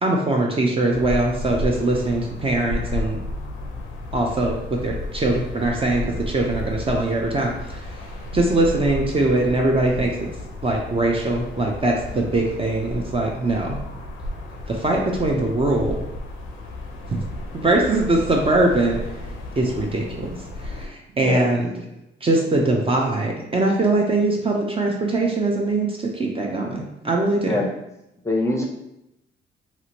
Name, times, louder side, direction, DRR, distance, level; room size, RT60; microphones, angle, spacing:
voice 1, 0.0-3.2 4.1-7.9 8.3-10.2 10.6-13.8 14.7-16.0 17.1-17.2 17.5-19.0 19.6-21.7 22.2-27.6, right 2 dB, 30° right, 0 dB, 0.5 m, -22 dB
sound 1, 0.9-20.9, left 1 dB, 90° left, 0.5 m, -33 dB
voice 2, 27.4-27.7 28.2-28.6, left 2 dB, 15° left, -2 dB, 0.6 m, -23 dB
2.8 x 2.5 x 2.8 m, 0.86 s
cardioid pair, 90°, 20 cm